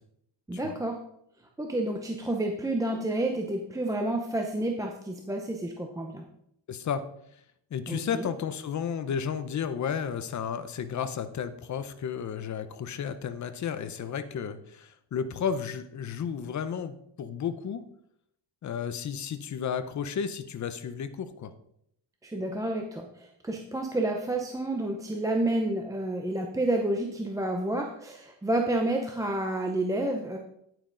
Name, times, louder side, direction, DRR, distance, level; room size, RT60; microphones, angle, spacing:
voice 1, 0.5-1.0 1.6-6.3 7.9-8.3 22.2-30.4, right 1 dB, 10° right, 2 dB, 0.6 m, -30 dB
voice 2, 6.7-7.0 7.7-17.8 18.6-21.5, left 7 dB, 40° left, 11 dB, 0.7 m, -33 dB
9.5 x 9.1 x 3.8 m, 0.73 s
cardioid pair, 175°, 45 cm